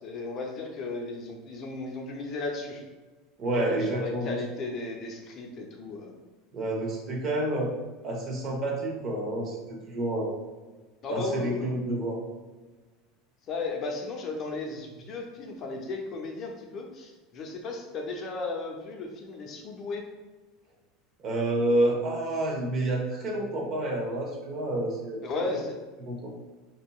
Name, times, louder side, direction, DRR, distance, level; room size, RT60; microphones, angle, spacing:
voice 1, 0.0-2.8 3.6-6.1 11.0-11.7 13.5-20.1 25.2-25.8, left 3 dB, 45° left, 2 dB, 0.7 m, -35 dB
voice 2, 3.4-4.4 6.5-7.7 8.0-10.3 11.1-12.2 21.2-25.2 26.0-26.3, right 1 dB, 45° right, -1 dB, 1.1 m, -29 dB
4.1 x 2.7 x 2.3 m, 1.3 s
hypercardioid pair, 85°, 0 cm